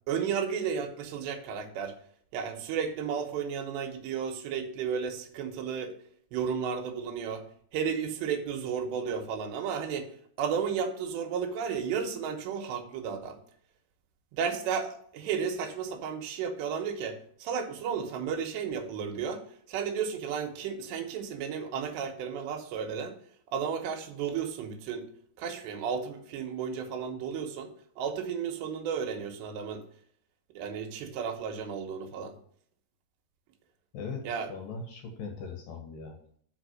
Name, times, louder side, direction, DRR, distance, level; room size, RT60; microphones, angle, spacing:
voice 1, 0.1-1.9 2.3-5.9 6.3-7.4 7.7-10.1 10.4-13.4 14.3-23.2 23.5-25.1 25.4-29.8 30.5-32.4 34.2-34.5, right 7 dB, 90° right, 5 dB, 3.3 m, -33 dB
voice 2, 33.9-36.2, left 4 dB, 65° left, 3 dB, 2.5 m, -40 dB
6.2 x 5.9 x 6.3 m, 0.62 s
omnidirectional pair, 4.8 m